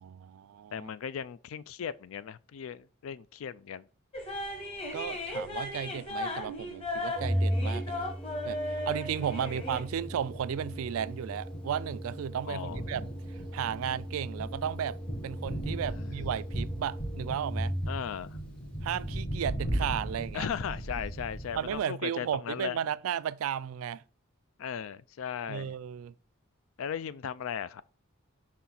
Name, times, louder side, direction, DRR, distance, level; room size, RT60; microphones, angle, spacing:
voice 1, 0.0-0.9 4.9-8.1 8.4-15.0 15.2-17.7 18.8-20.5 21.6-24.0 25.5-26.1, right 9 dB, 80° right, 0.3 m, -34 dB
voice 2, 0.7-3.9 9.4-9.5 12.5-12.8 15.9-16.1 17.9-18.4 20.3-22.8 24.6-25.8 26.8-27.8, left 8 dB, 75° left, 0.4 m, -37 dB
sound 1, 4.1-9.8, left 1 dB, 30° left, 1.1 m, -36 dB
Organ, 7.1-18.2, equal, 5° left, 0.4 m, -36 dB
Thunder, 9.2-21.8, right 1 dB, 45° left, 1.8 m, -39 dB
6.0 x 4.3 x 3.9 m
head